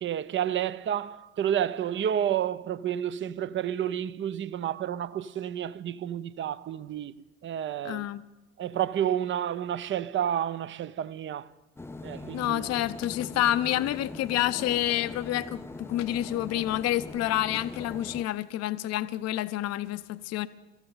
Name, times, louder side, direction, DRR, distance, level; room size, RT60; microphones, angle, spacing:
voice 1, 0.0-7.1 7.4-8.1 8.6-11.5 12.0-12.7, right 10 dB, 30° right, 0.7 m, -30 dB
voice 2, 7.8-8.2 12.3-20.5, left 13 dB, 45° left, 0.7 m, -28 dB
sound 1, 11.8-18.3, left 2 dB, 5° left, 0.5 m, -42 dB
sound 2, 13.0-13.4 14.6-15.1 16.0-16.6 17.5-18.2, left 10 dB, 80° left, 1.1 m, -46 dB
23.5 x 14.0 x 4.0 m
hypercardioid pair, 65°, 37 cm